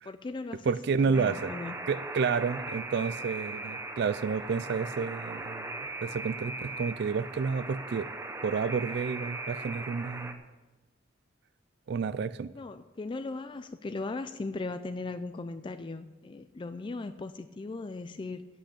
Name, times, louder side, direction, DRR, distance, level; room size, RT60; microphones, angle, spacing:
voice 1, 0.0-1.8 12.5-18.5, left 3 dB, 25° left, 10 dB, 0.3 m, -38 dB
voice 2, 0.7-1.5 1.9-5.8 6.0-8.1 8.4-10.4 11.9-12.5, right 5 dB, 60° right, 15 dB, 0.3 m, -30 dB
Alarm, 1.1-10.3, right 2 dB, 15° right, 0.7 m, -39 dB
8.5 x 7.8 x 8.6 m, 1.2 s
head